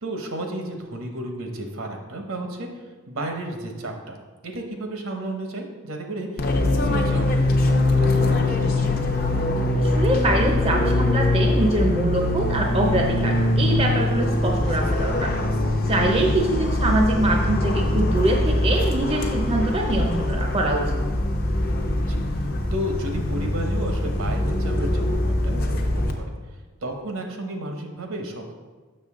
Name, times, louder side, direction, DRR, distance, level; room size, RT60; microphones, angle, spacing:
voice 1, 0.0-4.2 4.4-8.9 16.5-16.6 22.0-22.2 22.7-26.3 26.8-28.5, right 1 dB, 70° right, 3 dB, 1.0 m, -33 dB
Fixed-wing aircraft airplane, 6.4-26.1, left 1 dB, 40° left, 0.6 m, -22 dB
voice 2, 9.8-15.3 15.9-21.0, right 1 dB, 25° right, 1 dB, 0.5 m, -24 dB
6.7 x 6.2 x 3.6 m, 1.3 s
head